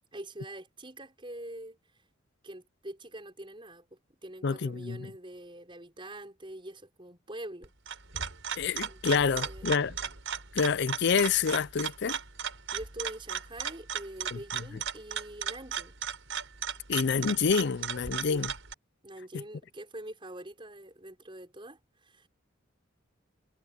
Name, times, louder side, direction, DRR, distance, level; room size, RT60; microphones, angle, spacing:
voice 1, 0.1-1.8 2.4-7.7 8.8-9.8 12.7-15.9 18.3-18.5 19.0-22.3, right 1 dB, 25° right, 6.0 m, -44 dB
voice 2, 4.4-5.0 8.6-9.9 10.5-12.2 14.3-14.6 16.9-18.5, left 5 dB, 60° left, 0.5 m, -27 dB
sound 1, 7.6-18.7, right 8 dB, 80° right, 4.7 m, -36 dB
head